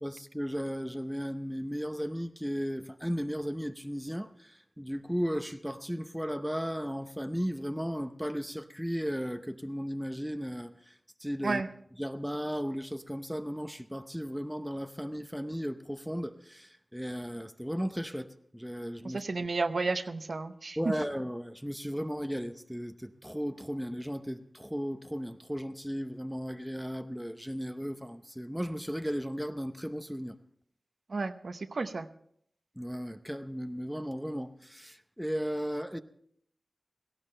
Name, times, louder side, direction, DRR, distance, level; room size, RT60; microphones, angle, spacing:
voice 1, 0.0-10.9 11.2-11.6 12.0-19.2 20.8-30.4 32.8-36.0, equal, ahead, 0.8 m, -35 dB
voice 2, 19.0-20.9 31.1-32.1, right 3 dB, 70° right, 0.8 m, -32 dB
17.5 x 16.5 x 3.3 m
wide cardioid pair, 90°, 0 cm